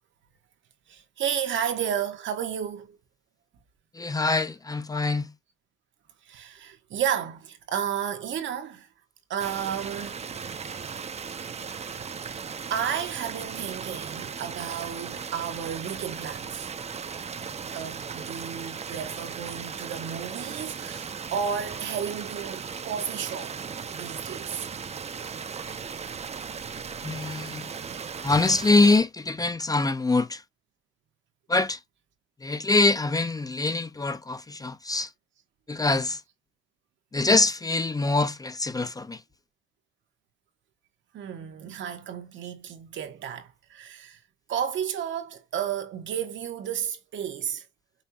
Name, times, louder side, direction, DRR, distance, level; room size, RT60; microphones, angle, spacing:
voice 1, 0.9-3.0 6.2-8.9 9.3-10.2 11.7-12.1 12.7-16.7 17.7-23.6 23.9-24.7 27.0-27.1 27.6-27.7 28.8-28.9 41.1-44.2 44.5-47.6, right 8 dB, 75° right, 1.2 m, -32 dB
voice 2, 3.9-5.3 27.0-27.7 28.2-30.4 31.5-31.8 32.4-35.1 35.7-36.2 37.1-39.2, left 3 dB, 20° left, 0.5 m, -24 dB
sound 1, 9.4-29.0, right 6 dB, 35° right, 0.6 m, -37 dB
5.4 x 2.1 x 2.8 m
cardioid pair, 90°, 20 cm